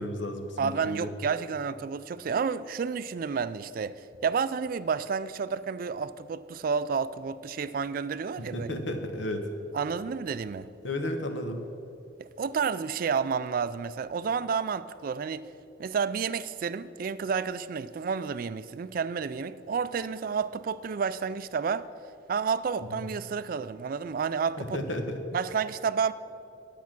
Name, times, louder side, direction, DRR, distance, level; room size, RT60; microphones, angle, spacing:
voice 1, 0.0-1.1 8.5-9.4 10.8-11.6 22.9-23.0 24.6-25.2, left 1 dB, 85° left, 1.2 m, -33 dB
voice 2, 0.6-8.7 9.7-10.7 12.2-15.4 15.8-21.9 22.3-24.8 25.3-26.1, right 6 dB, 50° right, 0.3 m, -30 dB
10.5 x 8.3 x 6.1 m
head